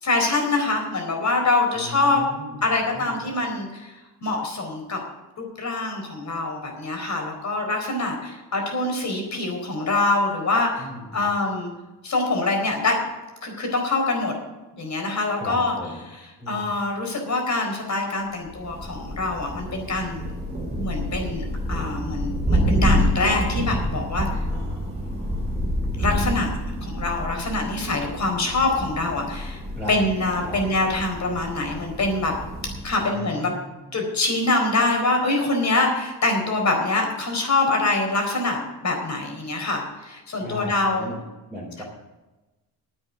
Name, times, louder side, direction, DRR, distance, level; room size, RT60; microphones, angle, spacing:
voice 1, 0.0-2.2 2.6-3.9 4.2-5.0 5.4-10.9 11.1-11.7 12.0-13.0 13.4-14.4 14.8-15.7 16.5-20.3 20.8-24.4 26.0-29.6 29.9-32.3 32.8-33.5 33.9-41.1 41.8-41.9, left 2 dB, 40° left, 2 dB, 4.3 m, -24 dB
voice 2, 1.7-2.6 2.9-3.2 10.8-11.3 15.4-16.1 16.4-16.8 24.5-25.6 29.7-30.0 30.4-30.6 33.0-33.8 40.4-41.2 41.5-41.8, equal, 5° left, -6 dB, 3.9 m, -37 dB
Thunder, 18.4-33.0, equal, 15° right, 4.0 m, -28 dB
10.5 x 9.0 x 8.1 m, 1.1 s
cardioid pair, 115°, 41 cm